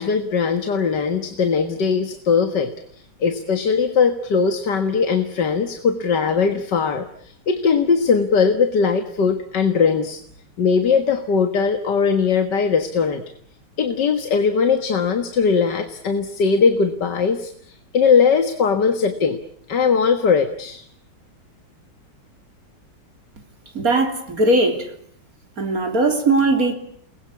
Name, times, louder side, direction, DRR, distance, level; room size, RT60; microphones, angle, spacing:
voice 1, 0.0-10.2 10.6-13.2 13.8-19.4 19.7-20.8, left 5 dB, 60° left, 8 dB, 2.1 m, -20 dB
voice 2, 23.7-24.9 25.6-26.7, right 2 dB, 45° right, 5 dB, 4.0 m, -19 dB
29.5 x 21.5 x 8.5 m, 0.64 s
omnidirectional pair, 2.1 m